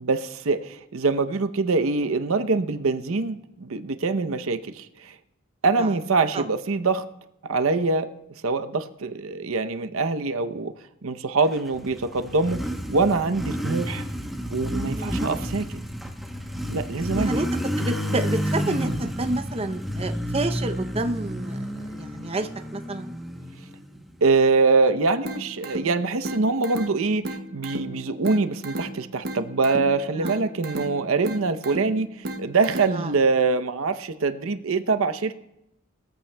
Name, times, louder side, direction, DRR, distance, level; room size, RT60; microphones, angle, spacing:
voice 1, 0.0-5.1 5.6-7.0 7.4-8.1 8.4-10.7 11.0-12.6 12.9-14.0 14.5-15.6 16.7-17.4 24.2-32.1 32.4-35.4, right 3 dB, 80° right, 9 dB, 0.7 m, -24 dB
Motorcycle, 11.6-24.2, equal, ahead, 0.8 m, -30 dB
voice 2, 15.0-15.3 17.2-17.5 17.8-23.1 30.2-30.3 32.9-33.1, right 2 dB, 30° right, 7 dB, 0.6 m, -29 dB
sound 1, 25.2-33.2, right 1 dB, 50° right, 1.1 m, -35 dB
20.0 x 14.5 x 2.2 m, 0.87 s
head